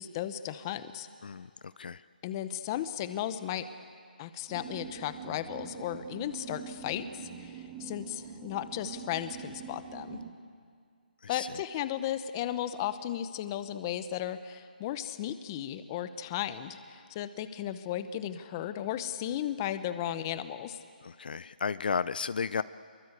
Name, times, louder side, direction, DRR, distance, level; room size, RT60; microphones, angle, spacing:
voice 1, 0.0-1.1 2.2-3.7 4.2-10.2 11.3-20.8, left 11 dB, 25° left, 12 dB, 0.9 m, -35 dB
voice 2, 1.2-2.0 11.2-11.5 21.0-22.6, left 5 dB, 65° left, 16 dB, 0.6 m, -33 dB
sound 1, 4.5-10.3, right 6 dB, 25° right, 1.6 m, -44 dB
26.5 x 23.0 x 8.2 m, 2.1 s
hypercardioid pair, 165°, 5 cm